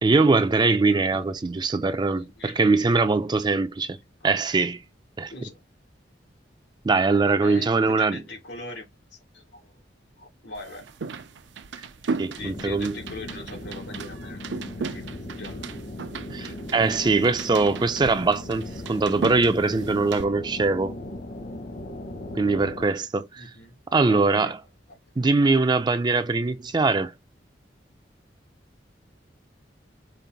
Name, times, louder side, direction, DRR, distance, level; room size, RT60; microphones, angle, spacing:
voice 1, 0.0-4.0 4.2-4.8 5.2-5.3 6.8-8.2 12.2-12.9 16.3-16.5 16.7-21.0 22.4-23.4 23.9-24.5 25.2-27.1, right 3 dB, 25° right, 0.4 m, -22 dB
voice 2, 2.1-2.7 4.2-4.3 5.3-5.6 7.4-9.8 10.2-10.9 12.3-14.5 14.8-15.7 16.4-16.6 23.4-23.8 24.0-24.5 24.9-25.7, left 2 dB, 80° left, 3.1 m, -42 dB
sound 1, 10.5-20.3, right 4 dB, 80° right, 0.5 m, -36 dB
sound 2, 12.4-22.9, left 1 dB, 55° left, 1.0 m, -38 dB
5.3 x 2.5 x 4.0 m
head